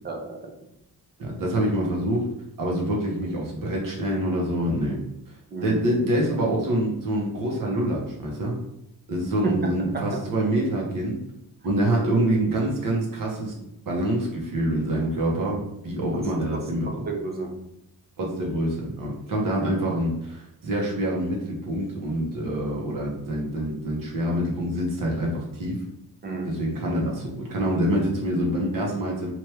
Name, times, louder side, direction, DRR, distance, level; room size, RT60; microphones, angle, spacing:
voice 1, 0.0-0.5 5.5-5.8 9.4-10.1 16.9-17.6 26.2-26.6, right 3 dB, 25° right, 1 dB, 0.5 m, -31 dB
voice 2, 1.2-2.3 2.6-5.0 5.6-8.6 9.1-11.2 11.6-13.5 13.9-16.9 18.2-25.8 26.4-29.3, right 1 dB, 60° right, -2 dB, 1.0 m, -26 dB
3.0 x 2.5 x 3.3 m, 0.79 s
wide cardioid pair, 165°, 38 cm